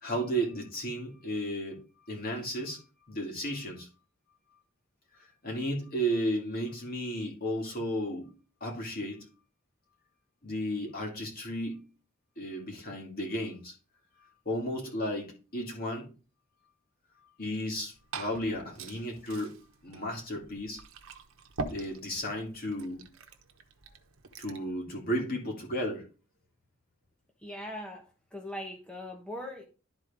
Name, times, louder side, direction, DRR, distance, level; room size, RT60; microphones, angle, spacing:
voice 1, 0.0-1.8 2.1-2.8 3.1-3.9 5.4-8.3 8.6-9.2 10.4-11.8 12.4-13.7 14.2-16.1 17.4-19.6 19.8-20.8 21.7-23.1 24.4-26.0, equal, 45° left, 1 dB, 2.6 m, -34 dB
Liquid, 17.6-24.7, right 3 dB, 85° right, 1.0 m, -44 dB
voice 2, 27.4-28.0 28.3-29.6, left 1 dB, 5° left, 0 dB, 1.1 m, -40 dB
12.0 x 4.3 x 3.6 m, 0.34 s
head